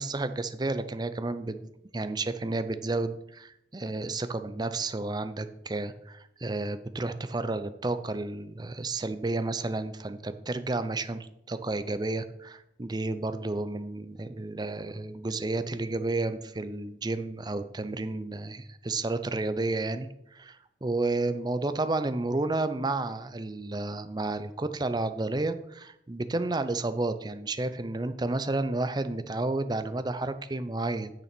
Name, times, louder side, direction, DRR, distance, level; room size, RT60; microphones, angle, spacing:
voice 1, 0.0-1.7 1.9-31.1, right 2 dB, 25° right, 11 dB, 0.6 m, -31 dB
9.1 x 6.8 x 6.0 m, 0.81 s
head